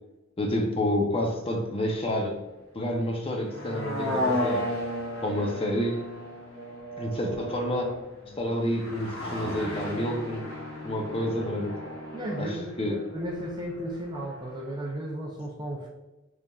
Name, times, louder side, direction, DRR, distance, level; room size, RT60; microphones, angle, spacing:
voice 1, 0.4-2.4 2.7-4.6 5.2-6.0 7.0-7.9 8.4-10.4 10.8-11.8 12.4-13.0, left 1 dB, 30° left, 1 dB, 0.6 m, -29 dB
sound 1, 3.3-14.4 14.7-14.8, left 1 dB, 80° left, 1.2 m, -34 dB
voice 2, 12.1-15.9, right 1 dB, 20° right, -1 dB, 0.4 m, -34 dB
3.8 x 3.3 x 2.3 m, 1.1 s
head